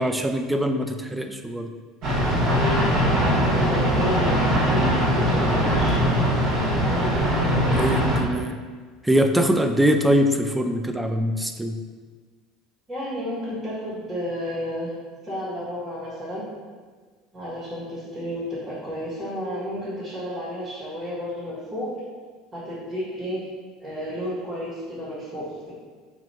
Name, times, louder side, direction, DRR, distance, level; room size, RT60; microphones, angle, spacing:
voice 1, 0.0-1.7 7.7-8.6 9.0-11.8, equal, 10° right, 6 dB, 0.3 m, -22 dB
sound 1, 2.0-8.2, equal, 60° right, 1.3 m, -21 dB
voice 2, 2.4-6.0 6.8-7.8 12.9-14.9 15.2-16.4 17.3-21.9 22.5-23.4 23.8-25.7, equal, 25° right, -11 dB, 1.5 m, -32 dB
2.9 x 2.6 x 4.3 m, 1.5 s
hypercardioid pair, 70°, 0 cm